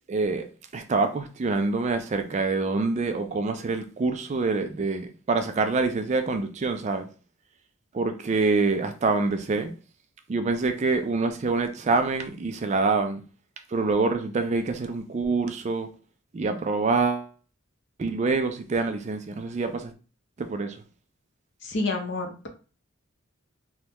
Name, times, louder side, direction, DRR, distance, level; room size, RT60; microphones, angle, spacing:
voice 1, 0.1-0.4 0.7-7.1 7.9-9.7 10.3-13.2 13.7-15.9 16.3-17.3 18.0-19.9 20.4-20.8, right 3 dB, 35° right, 0.3 m, -26 dB
voice 2, 21.6-22.5, left 2 dB, 55° left, 0.6 m, -29 dB
3.4 x 2.1 x 2.9 m
head